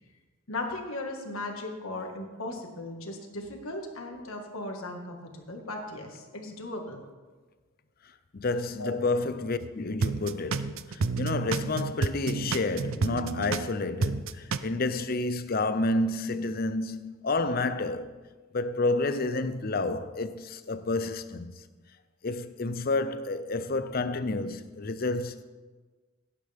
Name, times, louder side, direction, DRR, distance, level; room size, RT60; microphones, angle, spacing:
voice 1, 0.5-7.0 8.8-9.1, left 2 dB, 75° left, 1.8 m, -37 dB
voice 2, 8.3-18.1 18.5-21.5 22.2-25.4, left 2 dB, 45° left, 0.6 m, -30 dB
sound 1, 9.6-9.7 10.0-13.7 14.0-14.6, right 4 dB, 70° right, 0.5 m, -30 dB
17.5 x 9.7 x 3.6 m
head